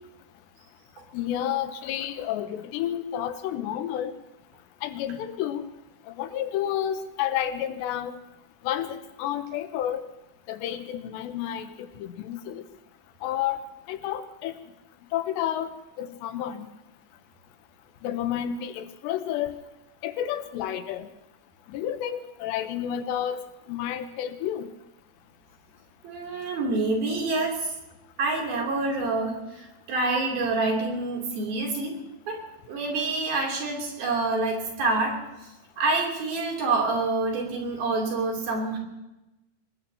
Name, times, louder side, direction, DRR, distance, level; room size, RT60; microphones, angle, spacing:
voice 1, 1.1-4.1 4.8-5.6 6.2-8.1 8.6-10.0 10.5-12.6 13.2-13.6 13.9-14.5 15.1-15.7 16.0-16.7 18.0-19.5 20.0-21.1 21.7-23.4 23.7-24.7, left 11 dB, 85° left, 10 dB, 3.0 m, -30 dB
voice 2, 26.0-27.7 28.2-32.0 32.3-35.2 35.8-38.8, right 3 dB, 60° right, 0 dB, 4.8 m, -27 dB
24.5 x 20.0 x 2.9 m, 0.96 s
omnidirectional pair, 5.0 m